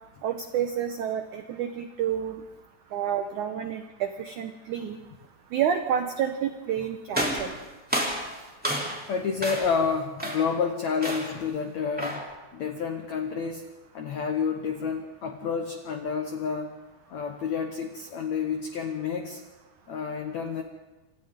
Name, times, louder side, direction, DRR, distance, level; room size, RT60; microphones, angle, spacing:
voice 1, 0.2-2.4 2.9-5.0 5.5-7.5, right 9 dB, 85° right, 6 dB, 1.7 m, -29 dB
sound 1, 7.1-9.1 9.4-9.8 10.2-10.6 11.0-11.4 12.0-12.3, equal, 5° right, 2.0 m, -30 dB
voice 2, 9.1-12.3 12.5-13.7 13.9-16.7 17.1-19.4 19.9-20.6, left 6 dB, 80° left, 5 dB, 1.6 m, -29 dB
27.0 x 27.0 x 3.7 m, 1.1 s
omnidirectional pair, 4.9 m